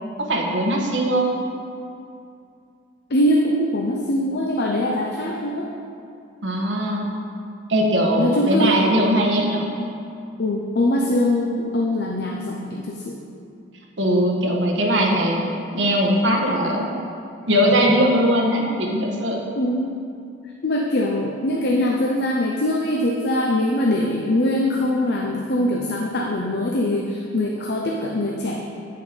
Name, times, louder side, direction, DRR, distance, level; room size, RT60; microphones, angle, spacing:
voice 1, 0.2-1.3 6.4-7.1 7.7-9.7 14.0-15.4 15.7-16.9 17.5-19.4, equal, 70° right, -1 dB, 1.4 m, -20 dB
voice 2, 3.1-5.7 8.2-8.8 10.4-13.1 19.6-19.9 20.6-28.6, left 1 dB, 60° left, 0 dB, 0.7 m, -22 dB
9.3 x 6.6 x 5.2 m, 2.5 s
head